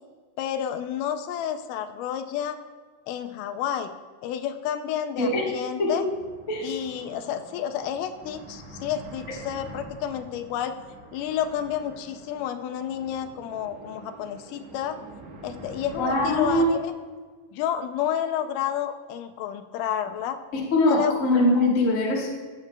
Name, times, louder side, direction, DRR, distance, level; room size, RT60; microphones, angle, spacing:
voice 1, 0.4-2.6 3.1-3.9 4.2-6.0 6.6-10.8 11.1-15.0 15.4-16.9 17.5-20.4 20.9-21.2, left 9 dB, 80° left, 9 dB, 2.1 m, -30 dB
sound 1, 6.0-16.6, right 2 dB, 60° right, 2.2 m, -45 dB
voice 2, 16.0-16.8 20.5-22.3, left 1 dB, 65° left, -2 dB, 0.8 m, -22 dB
14.5 x 7.2 x 2.2 m, 1.5 s
omnidirectional pair, 3.8 m